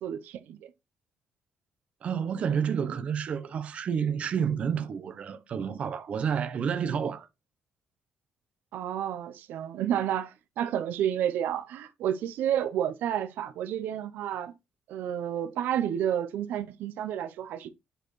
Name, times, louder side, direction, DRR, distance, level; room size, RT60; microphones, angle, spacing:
voice 1, 0.0-0.7 8.7-14.5 14.9-17.7, right 10 dB, 85° right, 0.6 m, -30 dB
voice 2, 2.0-7.3, right 7 dB, 40° right, 0.7 m, -29 dB
7.7 x 4.4 x 3.1 m
cardioid pair, 170°, 3 cm